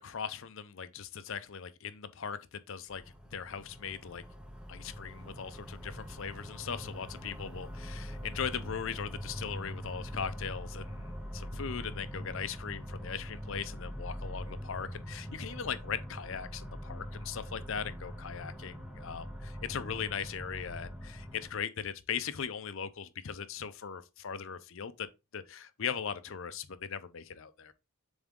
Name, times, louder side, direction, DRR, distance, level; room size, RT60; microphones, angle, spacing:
voice 1, 0.0-3.0 3.3-4.2 4.7-25.1 25.3-27.7, left 7 dB, 60° left, 0.6 m, -39 dB
sound 1, 2.9-21.5, equal, 5° right, 0.6 m, -43 dB
7.2 x 3.5 x 3.7 m
head